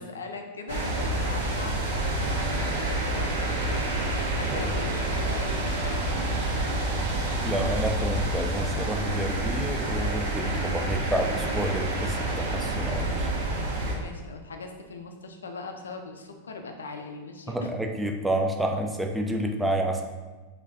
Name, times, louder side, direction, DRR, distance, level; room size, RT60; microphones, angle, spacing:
voice 1, 0.0-6.2 13.9-17.7, left 3 dB, 70° left, 4 dB, 0.4 m, -40 dB
sound 1, 0.7-13.9, right 2 dB, 55° right, 0.6 m, -28 dB
voice 2, 7.0-13.3 17.5-20.0, right 1 dB, 5° right, 2 dB, 0.4 m, -29 dB
3.1 x 2.3 x 3.3 m, 1.2 s
figure-of-eight pair, 90°, 0 cm